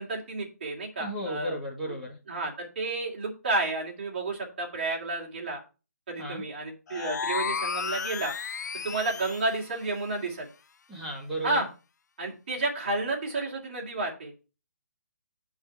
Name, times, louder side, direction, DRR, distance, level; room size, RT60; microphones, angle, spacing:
voice 1, 0.0-1.6 1.9-2.0 2.3-5.6 6.1-8.3 8.8-10.5 11.4-11.7 12.2-14.3, right 2 dB, 35° right, -1 dB, 2.6 m, -31 dB
voice 2, 1.0-2.2 6.2-6.4 10.9-11.6, right 1 dB, ahead, -9 dB, 1.8 m, -34 dB
sound 1, 6.9-9.6, left 6 dB, 80° left, 0.4 m, -33 dB
6.5 x 5.1 x 6.0 m, 0.32 s
hypercardioid pair, 180°, 9 cm